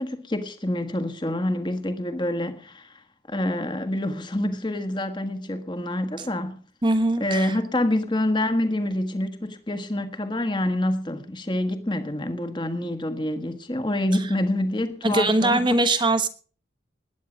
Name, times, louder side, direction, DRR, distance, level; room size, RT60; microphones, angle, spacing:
voice 1, 0.0-3.0 3.3-6.6 7.2-15.7, left 1 dB, 25° left, 1.5 m, -27 dB
voice 2, 6.8-7.6 15.0-16.3, right 2 dB, 25° right, 1.1 m, -22 dB
20.5 x 9.4 x 5.2 m
head